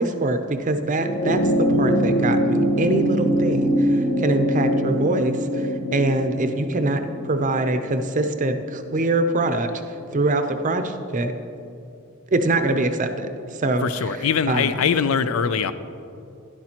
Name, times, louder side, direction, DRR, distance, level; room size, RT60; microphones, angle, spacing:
voice 1, 0.0-9.7 10.1-11.3 12.3-13.3 13.6-14.2 14.5-14.7, right 2 dB, 35° right, 8 dB, 0.6 m, -24 dB
sound 1, 0.9-9.6 10.8-10.9, equal, 40° left, 1.3 m, -23 dB
voice 2, 13.8-15.7, left 6 dB, 75° left, 13 dB, 0.4 m, -22 dB
12.0 x 11.0 x 2.9 m, 2.6 s
head